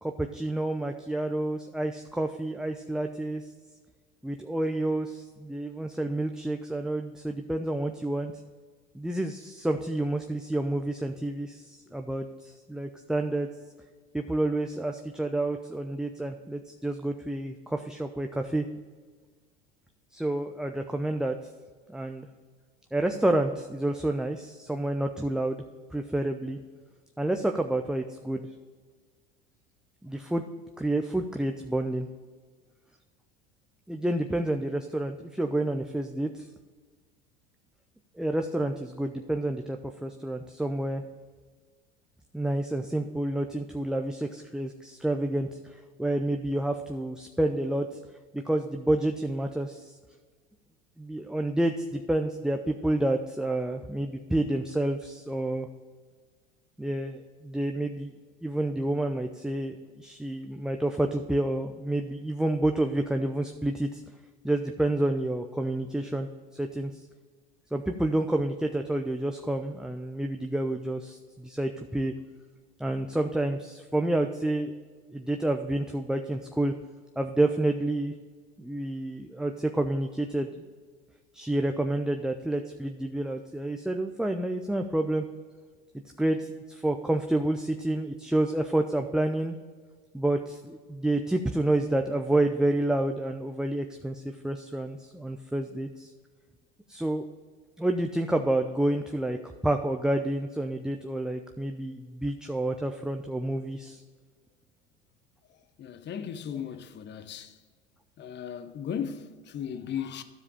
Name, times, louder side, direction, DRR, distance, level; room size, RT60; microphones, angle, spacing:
voice 1, 0.0-3.4 4.2-8.3 8.9-13.5 14.1-18.7 20.1-21.4 21.9-22.3 22.9-25.6 25.9-26.6 27.2-28.5 30.0-30.4 30.8-32.1 33.9-36.5 38.2-41.0 42.3-47.9 48.3-50.0 51.0-55.7 56.8-58.1 58.4-64.0 64.4-66.9 67.7-72.1 72.8-74.7 75.1-76.7 77.2-78.1 78.6-80.7 81.3-85.2 86.2-89.6 90.1-96.1 96.9-97.3 97.8-99.4 99.6-104.0, right 1 dB, ahead, 0.4 m, -29 dB
voice 2, 105.8-107.6 108.2-110.2, left 8 dB, 35° left, 0.8 m, -36 dB
12.5 x 4.9 x 4.9 m
hypercardioid pair, 75°, 32 cm